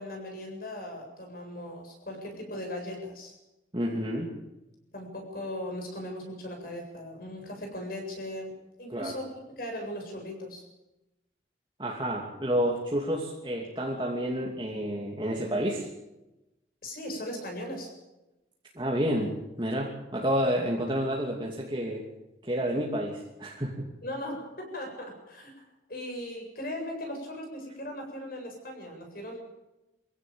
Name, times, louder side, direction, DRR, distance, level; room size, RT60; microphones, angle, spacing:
voice 1, 0.0-3.4 4.9-8.5 8.8-10.6 16.8-17.9 24.0-29.4, left 1 dB, 50° left, 3 dB, 7.9 m, -38 dB
voice 2, 3.7-4.3 8.9-9.2 11.8-15.9 18.7-19.3 19.6-22.0 22.4-23.8, equal, 25° right, -2 dB, 2.8 m, -29 dB
24.0 x 16.5 x 8.8 m, 0.96 s
head